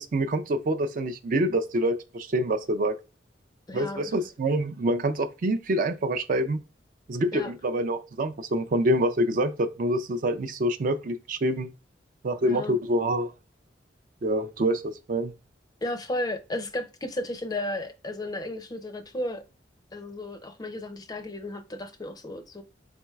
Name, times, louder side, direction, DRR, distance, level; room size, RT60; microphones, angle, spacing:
voice 1, 0.0-2.9 3.7-6.6 7.1-11.7 12.2-13.3 14.2-15.3, right 1 dB, 50° right, 0.4 m, -26 dB
voice 2, 3.7-4.1 7.3-7.5 12.4-12.8 15.8-19.4 19.9-22.6, left 1 dB, 20° left, 0.4 m, -34 dB
4.3 x 3.8 x 2.3 m
head